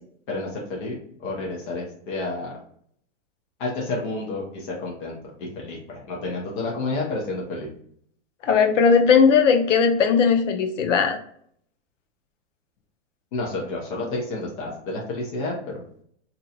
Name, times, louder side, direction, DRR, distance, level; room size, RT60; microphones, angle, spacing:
voice 1, 0.3-2.6 3.6-7.7 13.3-15.8, left 2 dB, 45° left, -3 dB, 0.8 m, -30 dB
voice 2, 8.4-11.2, left 6 dB, 85° left, 6 dB, 0.7 m, -18 dB
2.7 x 2.2 x 4.1 m, 0.64 s
supercardioid pair, 170°, 36 cm